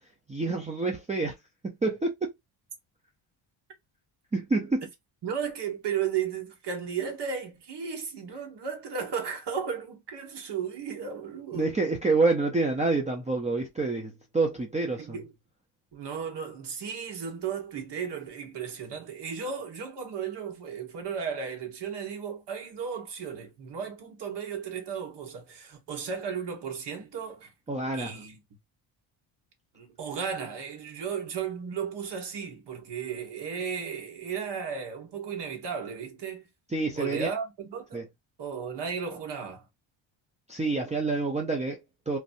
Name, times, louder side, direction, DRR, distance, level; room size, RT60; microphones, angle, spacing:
voice 1, 0.3-1.3 1.6-2.3 4.3-4.9 11.5-15.2 27.7-28.2 36.7-37.3 37.9-38.1 40.5-42.2, right 3 dB, 15° right, 0.5 m, -27 dB
voice 2, 5.2-11.7 15.0-15.3 15.9-27.5 27.9-28.4 29.7-36.5 37.0-38.1 38.4-39.6, right 7 dB, 55° right, 1.4 m, -35 dB
3.2 x 2.6 x 2.6 m
cardioid pair, 140°, 49 cm